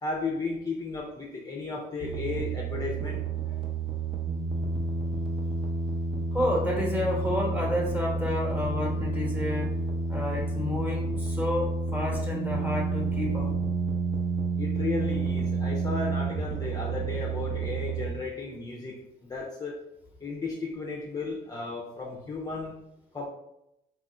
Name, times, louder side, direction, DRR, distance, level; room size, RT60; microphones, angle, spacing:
voice 1, 0.0-3.2 14.6-19.8 20.2-22.8 23.1-23.3, left 3 dB, 20° left, -2 dB, 0.5 m, -34 dB
sound 1, 2.0-18.1, right 3 dB, 30° right, 0.7 m, -30 dB
voice 2, 6.3-13.5, left 1 dB, 10° right, -2 dB, 1.1 m, -30 dB
2.9 x 2.4 x 4.2 m, 0.85 s
cardioid pair, 110°, 17 cm